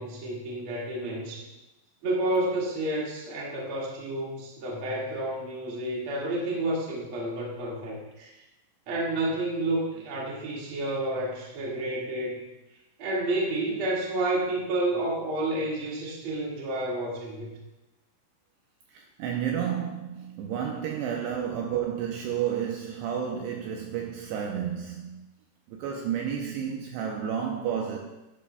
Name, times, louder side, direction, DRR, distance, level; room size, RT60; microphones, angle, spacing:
voice 1, 0.0-1.5 2.0-8.4 8.9-12.4 13.0-17.5, right 1 dB, 50° right, -3 dB, 1.6 m, -30 dB
voice 2, 18.9-25.2 25.7-28.0, right 8 dB, 85° right, 1 dB, 2.5 m, -31 dB
11.5 x 10.5 x 2.2 m, 0.98 s
omnidirectional pair, 5.5 m